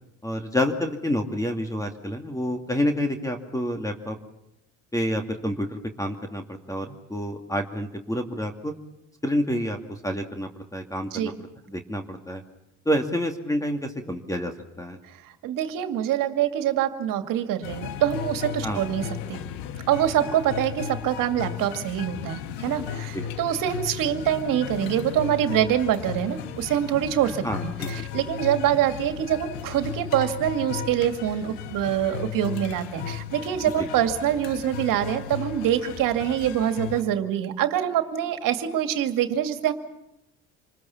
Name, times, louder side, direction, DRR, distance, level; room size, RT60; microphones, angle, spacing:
voice 1, 0.2-4.2 4.9-8.7 9.2-11.3 11.7-12.4 12.9-15.0 18.6-18.8 23.1-23.2 27.4-28.0 33.8-33.9, equal, 10° left, 5 dB, 2.3 m, -28 dB
voice 2, 15.1-19.4 19.9-39.7, right 11 dB, 60° right, 8 dB, 2.3 m, -25 dB
sound 1, 17.6-37.0, left 9 dB, 70° left, 1.5 m, -35 dB
27.5 x 20.5 x 7.3 m, 0.85 s
hypercardioid pair, 75°, 37 cm